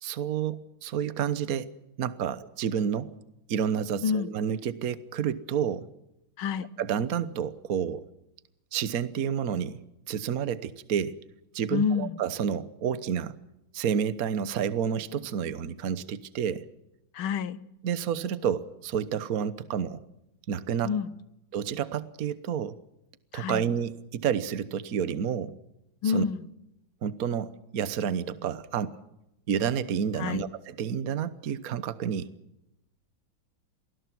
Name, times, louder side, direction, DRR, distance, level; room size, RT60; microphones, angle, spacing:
voice 1, 0.0-1.7 2.0-3.1 3.5-5.9 6.8-8.0 8.7-9.8 10.1-11.2 11.5-13.3 13.7-16.7 17.8-20.0 20.5-20.9 21.5-22.8 23.3-25.5 26.0-26.2 27.0-28.9 29.5-32.3, right 8 dB, 50° right, 14 dB, 1.4 m, -30 dB
voice 2, 6.4-6.7 11.7-12.2 17.1-17.6 20.8-21.1 23.3-23.7 26.0-26.4 30.2-30.4, left 6 dB, 75° left, 16 dB, 1.8 m, -28 dB
27.5 x 20.0 x 6.1 m, 0.87 s
omnidirectional pair, 2.3 m